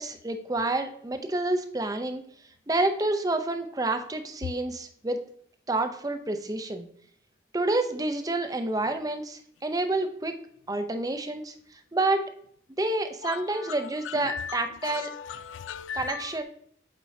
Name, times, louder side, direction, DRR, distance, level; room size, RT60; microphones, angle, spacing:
voice 1, 0.0-2.2 2.7-5.2 5.7-6.9 7.5-10.4 10.7-11.5 11.9-12.2 12.8-15.1 15.9-16.4, right 2 dB, 20° right, 0.5 m, -28 dB
voice 2, 13.2-16.4, left 7 dB, 80° left, 0.3 m, -37 dB
8.2 x 4.5 x 2.7 m
head